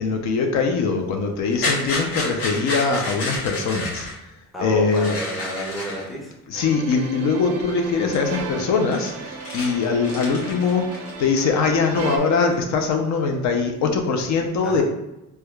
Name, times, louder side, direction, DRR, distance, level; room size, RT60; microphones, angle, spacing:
voice 1, 0.0-4.1 4.6-5.2 6.5-14.8, left 4 dB, 65° left, 3 dB, 0.5 m, -22 dB
sound 1, 1.4-4.2 4.9-6.1 6.9-7.0 7.5-7.8 8.1-8.3 8.5-11.7 12.0-12.7, left 2 dB, 45° left, 1.1 m, -30 dB
voice 2, 4.5-6.4 14.6-14.8, right 1 dB, ahead, -3 dB, 0.5 m, -30 dB
sound 2, 6.5-12.2, right 5 dB, 50° right, 0.4 m, -35 dB
4.7 x 2.2 x 2.3 m, 0.92 s
cardioid pair, 150°, 31 cm